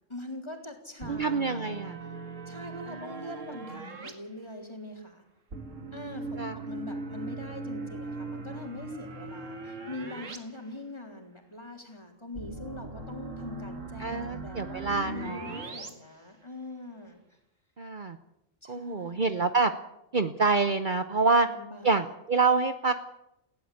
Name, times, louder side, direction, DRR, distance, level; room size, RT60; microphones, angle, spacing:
voice 1, 0.1-1.7 2.5-5.2 5.9-17.2 18.6-19.6 21.3-21.9, left 2 dB, 20° left, 2 dB, 3.7 m, -43 dB
sound 1, 1.0-4.1 5.5-10.4 10.7-10.8 12.4-15.9, right 3 dB, 85° right, 2.5 m, -40 dB
voice 2, 1.1-2.0 2.9-3.2 6.4-6.6 14.0-15.7 17.8-18.2 18.6-19.7 20.1-21.5 21.8-22.9, right 4 dB, 45° right, 9 dB, 1.0 m, -27 dB
19.5 x 16.5 x 8.6 m, 0.84 s
omnidirectional pair, 1.3 m